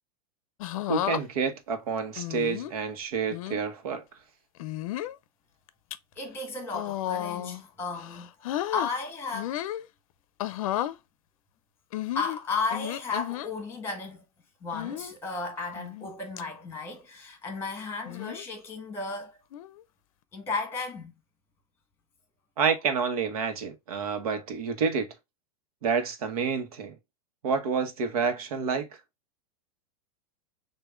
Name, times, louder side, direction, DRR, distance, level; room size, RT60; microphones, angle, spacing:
sound 1, 0.6-1.2 2.2-2.7 3.3-3.6 4.6-5.2 5.7-6.0 6.7-7.6 8.0-8.9 9.3-9.8 10.4-11.0 11.9-13.5 14.7-15.1 15.8-16.1 16.4-16.5 18.1-18.5 19.5-19.8, left 13 dB, 65° left, 0.5 m, -33 dB
voice 1, 0.9-4.0 22.6-25.1 25.8-26.9 27.4-28.9, right 5 dB, 75° right, 1.2 m, -28 dB
voice 2, 6.1-9.6 12.1-14.2 14.6-19.4 20.3-21.1 24.0-24.1, left 4 dB, 10° left, 1.3 m, -34 dB
6.6 x 2.6 x 2.4 m
supercardioid pair, 155°, 19 cm